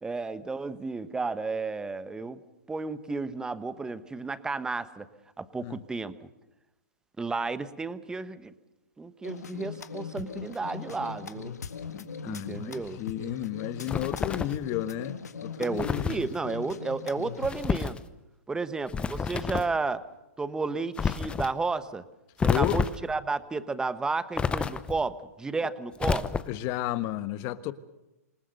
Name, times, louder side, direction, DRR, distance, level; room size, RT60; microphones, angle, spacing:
voice 1, 0.0-2.4 2.7-5.1 5.4-6.1 7.2-8.5 9.0-11.5 12.2-13.0 15.6-18.0 18.5-20.0 20.4-22.0 22.4-26.3, right 3 dB, 10° right, 1.1 m, -32 dB
sound 1, 9.2-17.8, left 6 dB, 80° left, 1.7 m, -40 dB
voice 2, 11.9-16.3 22.5-22.8 26.5-27.7, left 14 dB, 35° left, 1.3 m, -33 dB
sound 2, 13.9-14.6 15.8-16.2 17.4-18.0 18.9-19.8 21.0-21.5 22.4-23.1 24.4-25.1 26.0-26.7, left 6 dB, 10° left, 0.8 m, -29 dB
27.0 x 19.0 x 6.7 m
hypercardioid pair, 130°, 9 cm